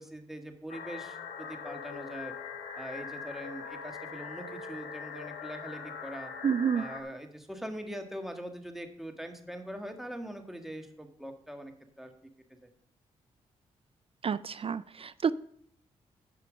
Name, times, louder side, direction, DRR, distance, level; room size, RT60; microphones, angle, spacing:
voice 1, 0.0-2.3 2.7-6.3 6.7-12.1 12.6-12.7, equal, ahead, 4 dB, 1.8 m, -42 dB
sound 1, 0.7-7.0, left 5 dB, 80° left, 1.2 m, -42 dB
voice 2, 6.4-6.8 14.2-15.3, right 7 dB, 40° right, 16 dB, 0.4 m, -29 dB
11.5 x 5.7 x 5.2 m, 0.66 s
hypercardioid pair, 40°, 15 cm